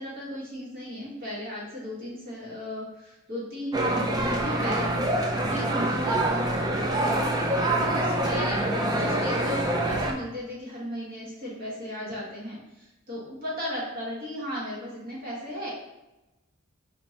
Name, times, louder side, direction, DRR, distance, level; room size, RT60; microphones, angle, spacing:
voice 1, 0.0-4.9 5.4-7.3 7.8-15.7, equal, 45° right, -6 dB, 1.3 m, -36 dB
sound 1, 3.7-10.1, right 1 dB, 20° right, 0.3 m, -25 dB
4.3 x 3.1 x 2.8 m, 0.99 s
head